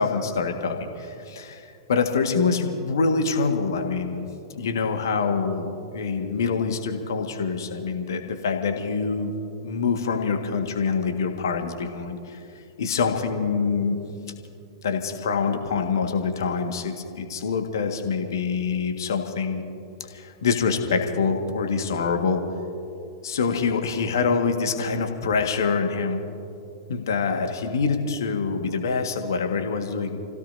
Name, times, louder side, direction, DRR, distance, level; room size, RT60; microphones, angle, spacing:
voice 1, 0.0-1.6 1.9-9.3 9.6-12.4 12.8-14.0 14.8-19.6 20.1-22.4 23.2-26.2 26.9-30.2, left 5 dB, 60° left, 5 dB, 1.7 m, -25 dB
30.0 x 16.5 x 2.7 m, 2.6 s
figure-of-eight pair, 100°, 2 cm